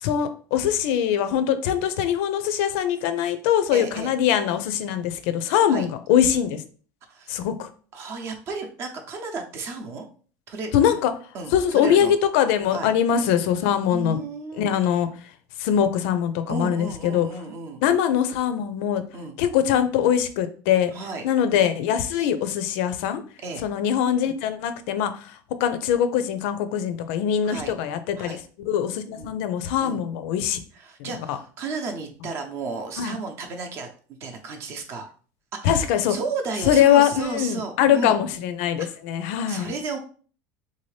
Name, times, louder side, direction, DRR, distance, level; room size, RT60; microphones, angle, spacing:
voice 1, 0.0-6.6 7.3-7.7 10.7-11.1 11.5-14.2 14.6-15.1 15.6-17.3 17.8-19.0 19.4-20.9 21.2-23.2 23.6-28.4 28.7-30.6 31.0-31.4 33.0-33.2 35.6-36.2 36.7-39.7, left 9 dB, 65° left, 10 dB, 0.5 m, -22 dB
voice 2, 3.7-4.1 5.7-5.9 7.1-7.3 7.9-10.1 10.5-12.1 12.7-12.9 13.7-15.0 16.5-17.8 19.1-19.4 20.9-21.2 23.4-23.6 27.4-27.7 28.2-28.4 29.2-29.3 29.8-30.0 30.7-33.9 34.2-35.1 35.5-38.2 39.5-40.0, right 4 dB, 35° right, 5 dB, 0.7 m, -33 dB
3.7 x 2.7 x 3.2 m, 0.41 s
cardioid pair, 160°, 7 cm